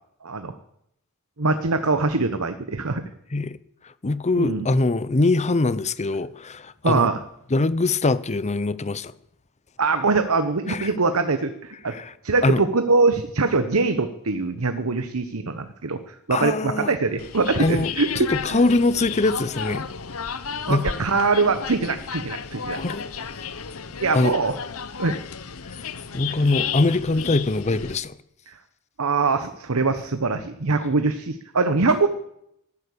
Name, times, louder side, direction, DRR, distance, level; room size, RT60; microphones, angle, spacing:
voice 1, 0.2-0.6 1.4-3.0 4.4-4.7 6.8-7.2 9.8-12.0 12.2-18.6 20.7-22.8 24.0-24.5 25.0-25.2 28.5-28.6 29.0-32.1, right 3 dB, 85° right, 1.1 m, -23 dB
voice 2, 4.0-7.1 7.5-9.1 10.7-10.9 11.9-12.1 12.4-12.6 16.3-16.9 17.6-17.9 18.2-19.9 20.7-20.8 22.7-23.0 24.1-24.4 26.1-28.1, left 2 dB, 30° left, 0.7 m, -22 dB
sound 1, 17.2-28.0, left 6 dB, 75° left, 1.0 m, -33 dB
13.5 x 12.0 x 8.5 m
head